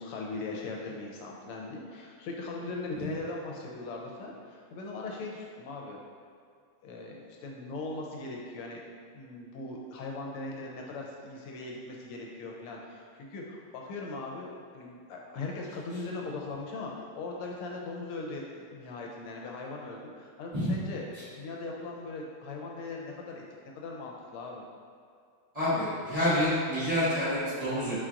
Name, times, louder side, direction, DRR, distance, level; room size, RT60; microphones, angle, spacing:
voice 1, 0.0-6.0 6.8-8.8 9.1-14.5 14.7-21.1 21.4-23.4 23.8-24.7, left 3 dB, 85° left, -1 dB, 1.5 m, -39 dB
voice 2, 25.5-27.9, left 1 dB, 20° right, -15 dB, 1.3 m, -28 dB
4.6 x 4.3 x 2.5 m, 2.3 s
omnidirectional pair, 2.4 m